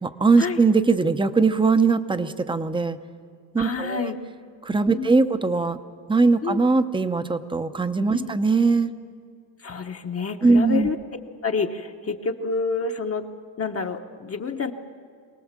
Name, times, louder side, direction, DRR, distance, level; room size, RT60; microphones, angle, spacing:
voice 1, 0.0-3.0 3.5-4.1 4.6-5.8 6.1-8.9 10.4-10.9, right 4 dB, 10° right, 11 dB, 0.7 m, -20 dB
voice 2, 3.6-4.2 4.9-5.2 6.4-6.6 8.1-8.4 9.6-11.0 11.4-13.2 13.6-14.7, left 4 dB, 30° left, 4 dB, 1.0 m, -28 dB
24.5 x 18.5 x 7.4 m, 2.2 s
cardioid pair, 140°, 46 cm